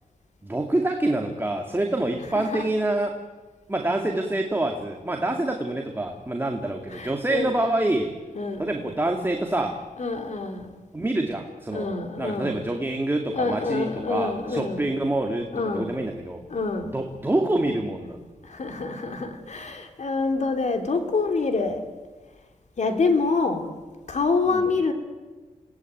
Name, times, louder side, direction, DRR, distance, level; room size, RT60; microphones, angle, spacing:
voice 1, 0.4-3.2 3.7-8.2 8.6-9.8 10.9-16.4 16.9-18.2 24.5-24.7, right 2 dB, 15° right, 3 dB, 2.3 m, -26 dB
voice 2, 6.9-7.7 8.3-8.7 10.0-10.8 11.7-12.6 13.3-14.8 15.5-15.9 16.5-16.9 18.4-21.8 22.8-23.6 24.1-24.9, left 3 dB, 55° left, 5 dB, 3.3 m, -26 dB
28.0 x 18.5 x 9.1 m, 1.3 s
wide cardioid pair, 105°, 15 cm